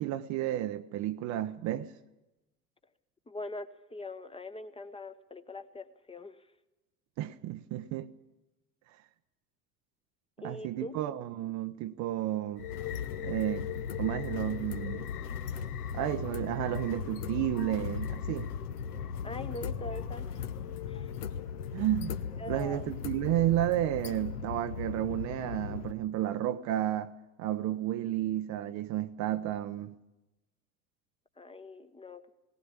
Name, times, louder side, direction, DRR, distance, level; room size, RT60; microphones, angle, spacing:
voice 1, 0.0-1.9 7.2-8.1 10.4-12.7 13.2-13.7 14.0-15.1 15.9-18.5 21.7-22.2 22.5-27.1 27.4-29.9, right 13 dB, 35° right, 0.7 m, -32 dB
voice 2, 3.3-6.4 10.4-10.9 19.2-20.4 20.9-21.1 22.4-22.8 31.4-32.3, left 2 dB, 10° left, 1.0 m, -42 dB
sound 1, 12.6-25.9, left 7 dB, 65° left, 1.3 m, -37 dB
18.5 x 18.5 x 8.7 m
figure-of-eight pair, 75°, 48 cm